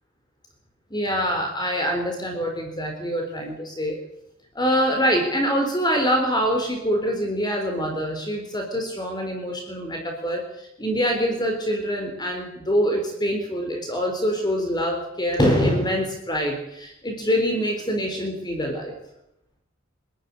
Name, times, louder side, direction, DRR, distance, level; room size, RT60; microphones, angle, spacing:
voice 1, 0.9-4.0 4.5-18.9, equal, 20° left, 3 dB, 4.0 m, -25 dB
25.5 x 13.5 x 9.7 m, 0.83 s
head